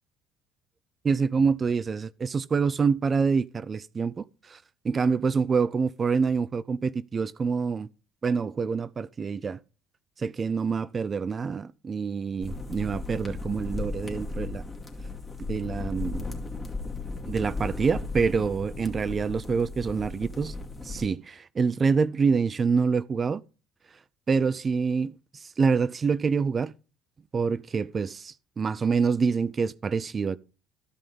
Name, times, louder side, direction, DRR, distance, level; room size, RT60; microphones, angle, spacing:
voice 1, 1.0-7.9 8.2-9.6 10.2-14.6 15.5-16.2 17.3-20.5 20.8-23.4 24.3-26.7 27.3-30.4, right 5 dB, 35° right, 0.4 m, -26 dB
sound 1, 12.4-21.1, left 3 dB, 25° left, 2.4 m, -36 dB
13.0 x 5.5 x 5.3 m
hypercardioid pair, 60°, 0 cm